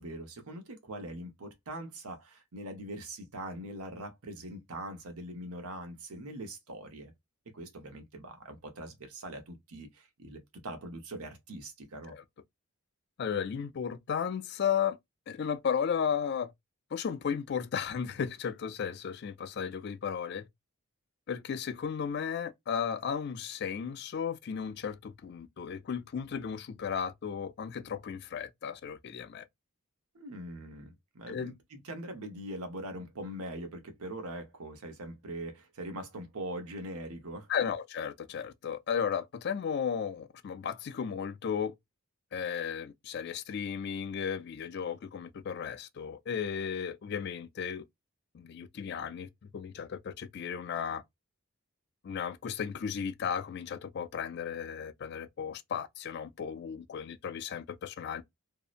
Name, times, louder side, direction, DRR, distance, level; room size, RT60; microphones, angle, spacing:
voice 1, 0.0-7.1 7.5-12.1 30.1-37.5, right 1 dB, 85° right, 0.8 m, -42 dB
voice 2, 13.2-15.0 15.3-16.5 16.9-20.5 21.3-29.4 31.3-31.5 37.5-41.7 42.3-47.8 48.3-51.0 52.0-58.2, left 7 dB, 50° left, 0.3 m, -34 dB
2.7 x 2.0 x 2.4 m
head